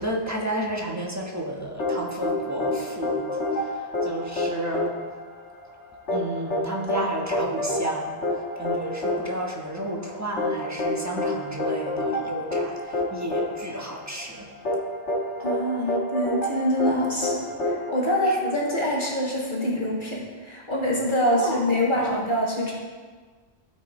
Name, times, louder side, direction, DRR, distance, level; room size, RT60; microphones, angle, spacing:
voice 1, 0.0-5.0 6.1-14.5 15.9-16.0 18.2-18.4 21.2-22.2, right 1 dB, 15° right, -2 dB, 1.3 m, -32 dB
sound 1, 1.8-18.7, left 1 dB, 85° left, 2.0 m, -28 dB
voice 2, 15.4-22.7, equal, 45° left, -4 dB, 2.0 m, -25 dB
15.0 x 5.4 x 4.3 m, 1.5 s
omnidirectional pair, 1.2 m